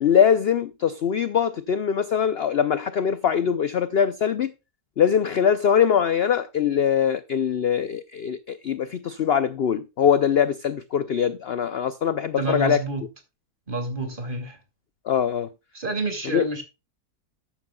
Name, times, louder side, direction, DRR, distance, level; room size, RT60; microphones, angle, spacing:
voice 1, 0.0-4.5 5.0-12.8 15.1-15.5 16.2-16.4, left 8 dB, 55° left, 0.7 m, -22 dB
voice 2, 12.4-13.0 13.7-14.6 15.7-16.6, right 3 dB, 35° right, 2.7 m, -28 dB
13.5 x 9.2 x 2.3 m
omnidirectional pair, 1.6 m